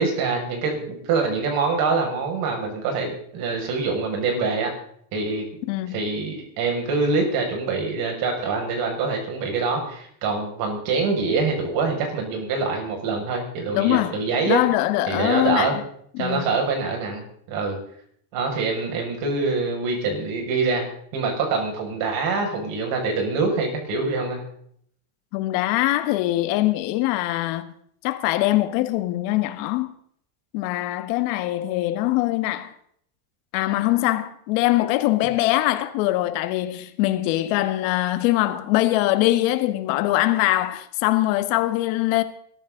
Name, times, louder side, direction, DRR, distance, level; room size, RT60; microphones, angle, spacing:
voice 1, 0.0-4.8 5.1-5.5 5.9-14.6 15.1-15.8 16.2-17.8 18.3-20.9 21.1-24.4, right 4 dB, 55° right, 6.6 m, -25 dB
voice 2, 5.7-6.0 13.7-14.2 14.5-15.8 16.1-16.4 25.3-27.7 28.0-29.9 30.5-32.7 33.5-42.2, left 16 dB, 70° left, 1.9 m, -22 dB
22.0 x 14.0 x 4.0 m
cardioid pair, 155°, 41 cm